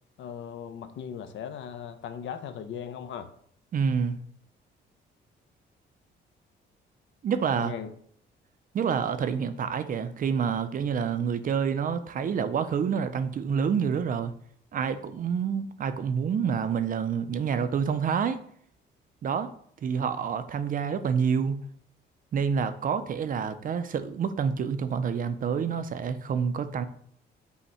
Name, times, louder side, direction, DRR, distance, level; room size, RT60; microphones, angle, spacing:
voice 1, 0.2-3.3 7.6-7.9, left 8 dB, 70° left, 10 dB, 0.5 m, -38 dB
voice 2, 3.7-4.2 7.2-7.7 8.7-14.3 14.7-18.4 19.2-19.5 19.8-21.6 22.3-26.8, right 6 dB, 45° right, 11 dB, 0.4 m, -28 dB
5.5 x 2.2 x 4.2 m, 0.63 s
cardioid pair, 90°, 20 cm